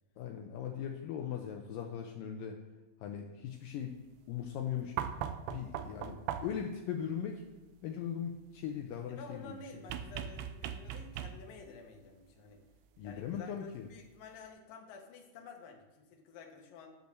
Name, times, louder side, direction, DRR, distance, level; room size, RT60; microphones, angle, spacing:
voice 1, 0.2-2.6 3.0-4.0 4.3-4.9 5.5-7.4 7.8-9.5 13.0-13.9, left 8 dB, 90° left, 4 dB, 1.9 m, -39 dB
sound 1, 5.0-6.7 9.9-11.7 13.2-13.3, right 9 dB, 85° right, 2.1 m, -39 dB
voice 2, 9.1-12.6 13.0-16.9, left 4 dB, 65° left, 2 dB, 2.7 m, -51 dB
10.5 x 5.5 x 6.7 m, 1.1 s
omnidirectional pair, 4.7 m